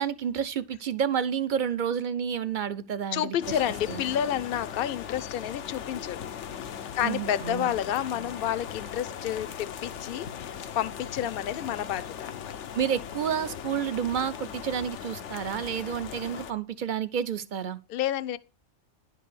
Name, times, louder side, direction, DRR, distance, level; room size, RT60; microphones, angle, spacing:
voice 1, 0.0-3.4 3.9-4.0 7.0-7.7 12.7-17.8, right 8 dB, 50° right, 0.7 m, -30 dB
voice 2, 3.1-6.2 6.9-12.6 17.9-18.4, left 11 dB, 60° left, 0.8 m, -30 dB
sound 1, 3.4-16.5, left 8 dB, 85° left, 1.1 m, -39 dB
11.0 x 4.7 x 6.9 m
omnidirectional pair, 1.2 m